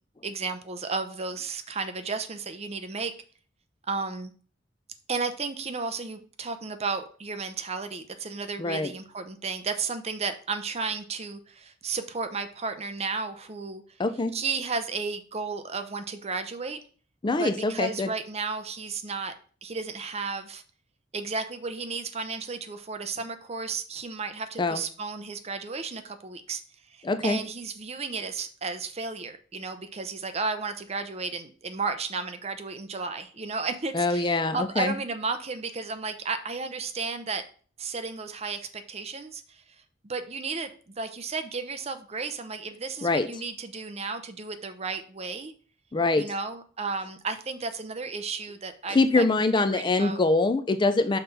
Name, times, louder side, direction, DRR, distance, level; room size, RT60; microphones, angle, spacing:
voice 1, 0.2-3.1 3.9-4.3 5.1-13.8 14.3-16.8 17.4-19.3 19.6-20.6 21.1-26.6 26.9-37.4 37.8-39.6 40.0-45.5 46.2-49.2 49.7-50.2, right 4 dB, 35° right, 8 dB, 0.7 m, -33 dB
voice 2, 8.6-8.9 14.0-14.3 17.2-18.1 24.6-24.8 27.0-27.4 33.9-34.9 43.0-43.3 45.9-46.2 48.9-51.2, left 3 dB, 25° left, 10 dB, 0.4 m, -24 dB
5.9 x 3.5 x 5.4 m, 0.42 s
head